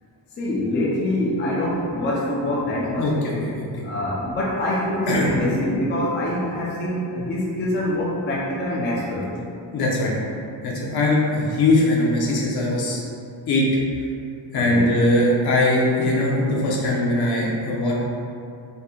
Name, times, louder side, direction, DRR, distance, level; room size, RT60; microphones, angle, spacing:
voice 1, 0.4-3.1 3.8-9.3 14.5-14.9, left 1 dB, 25° left, -6 dB, 0.4 m, -25 dB
voice 2, 3.0-3.7 5.1-5.3 9.7-10.1 10.6-13.0 13.5-13.6 14.5-17.9, left 1 dB, 60° left, -4 dB, 0.8 m, -21 dB
4.1 x 2.1 x 3.6 m, 2.5 s
wide cardioid pair, 170°, 44 cm